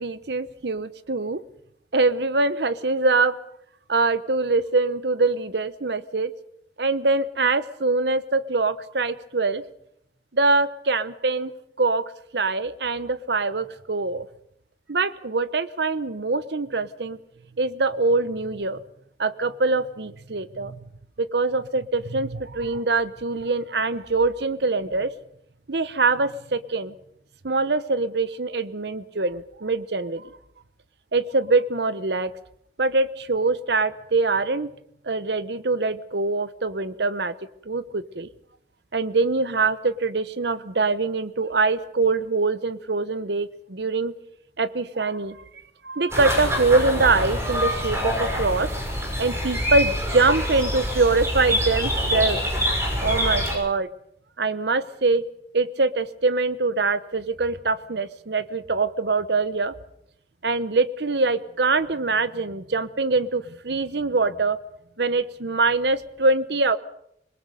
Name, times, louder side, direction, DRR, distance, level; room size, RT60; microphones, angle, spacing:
voice 1, 0.0-1.4 1.9-3.4 3.9-6.3 6.8-9.6 10.3-11.5 11.8-14.3 14.9-17.2 17.6-18.8 19.2-20.8 21.2-25.1 25.7-26.9 27.4-30.3 31.1-32.3 32.8-34.7 35.0-37.3 37.7-38.3 38.9-44.1 44.6-45.4 45.8-48.7 49.2-53.9 54.4-55.2 55.5-59.7 60.4-64.6 65.0-66.8, right 3 dB, 75° right, 14 dB, 1.0 m, -24 dB
sound 1, 46.1-53.5, equal, 15° right, 6.2 m, -25 dB
25.5 x 21.5 x 5.3 m, 0.74 s
head